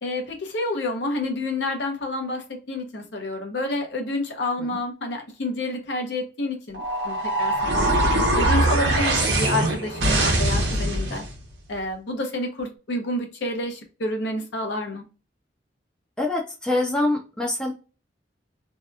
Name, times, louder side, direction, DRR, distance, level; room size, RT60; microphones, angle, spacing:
voice 1, 0.0-11.3 11.7-15.0, left 2 dB, 70° left, 3 dB, 0.7 m, -29 dB
sound 1, 6.7-11.3, right 1 dB, 70° right, 0.9 m, -22 dB
voice 2, 16.2-17.7, left 2 dB, 5° left, -2 dB, 0.4 m, -25 dB
2.7 x 2.2 x 2.2 m, 0.33 s
head